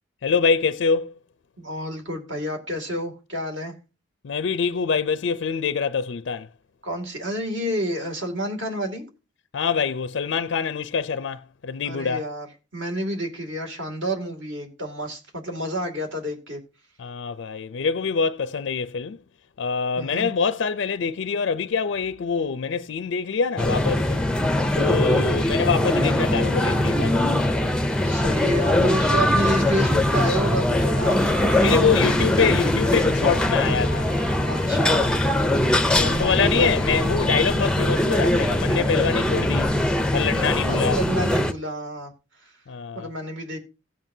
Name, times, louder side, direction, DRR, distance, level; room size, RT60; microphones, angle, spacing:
voice 1, 0.2-1.1 4.2-6.5 9.5-12.2 17.0-19.2 19.6-24.2 24.8-27.3 31.6-34.1 35.9-39.7 40.1-41.0 42.7-43.1, left 5 dB, 60° left, 0.4 m, -25 dB
voice 2, 1.6-3.7 6.8-9.0 11.8-12.5 12.7-16.6 20.0-20.3 24.6-24.9 28.0-32.1 32.4-32.9 34.4-35.2 35.9-36.7 40.3-42.1 42.4-42.5 42.9-43.6, equal, 65° right, 2.3 m, -30 dB
sound 1, 23.6-41.5, left 1 dB, 5° left, 0.5 m, -21 dB
sound 2, 25.7-36.7, equal, 45° right, 5.4 m, -39 dB
16.5 x 7.5 x 2.7 m
head